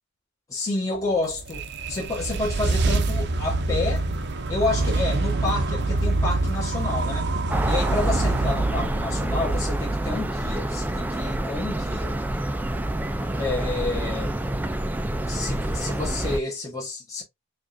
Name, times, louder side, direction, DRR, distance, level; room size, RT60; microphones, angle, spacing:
voice 1, 0.5-4.1 4.5-7.3 7.7-12.1 13.3-14.4 15.3-17.2, left 3 dB, 15° left, 1.1 m, -29 dB
sound 1, 1.1-10.4, right 2 dB, 50° right, 0.6 m, -26 dB
sound 2, 7.5-16.4, right 1 dB, 10° right, 0.4 m, -27 dB
4.9 x 2.5 x 2.5 m
head